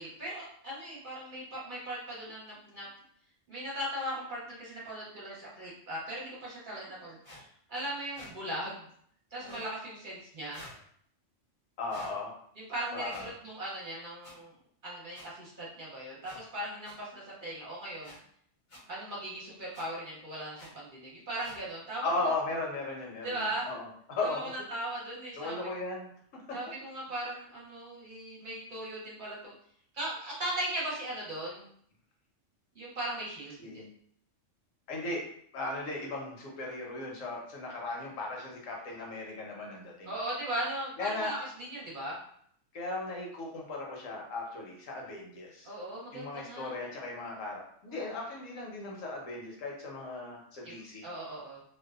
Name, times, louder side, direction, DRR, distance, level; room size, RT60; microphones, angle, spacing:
voice 1, 0.0-2.9 3.5-7.4 7.7-8.8 9.3-10.7 12.6-14.5 14.8-18.2 18.9-22.1 23.2-23.7 24.2-24.4 24.7-25.7 26.5-29.5 29.9-31.7 32.7-33.8 40.0-42.2 45.6-46.7 47.9-48.1 50.6-50.7 51.0-51.6, right 1 dB, 45° right, -6 dB, 0.8 m, -38 dB
sound 1, 7.2-7.4 8.1-8.3 9.4-9.7 10.5-10.8 11.9-12.1 13.1-13.3 14.2-14.3 15.1-15.3 16.2-16.4 16.8-17.0 18.0-18.2 18.7-18.8 19.7-19.9 20.6-20.7 21.4-21.6, left 1 dB, 40° left, 0.5 m, -49 dB
voice 2, 11.8-12.3 12.9-13.3 22.0-24.5 25.4-26.6 33.6-33.9 34.9-35.2 35.5-40.1 41.0-41.3 42.7-45.7 46.1-51.1, left 2 dB, 80° left, -1 dB, 1.1 m, -37 dB
2.6 x 2.1 x 2.3 m, 0.64 s
omnidirectional pair, 1.3 m